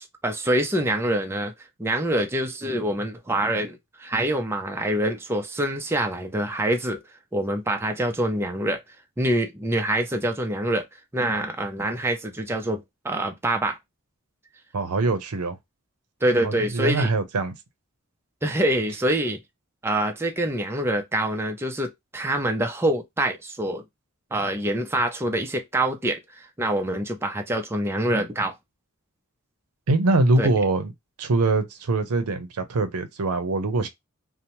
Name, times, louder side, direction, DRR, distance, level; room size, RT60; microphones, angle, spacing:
voice 1, 0.0-1.5 1.8-7.0 7.3-8.8 9.2-10.9 11.1-13.8 16.2-17.1 18.4-19.4 19.8-23.8 24.3-28.5 30.4-30.5, right 1 dB, 10° right, 0.4 m, -25 dB
voice 2, 14.7-15.6 16.4-17.5 29.9-30.9 31.2-33.9, right 3 dB, 85° right, 0.6 m, -23 dB
2.7 x 2.0 x 2.9 m
head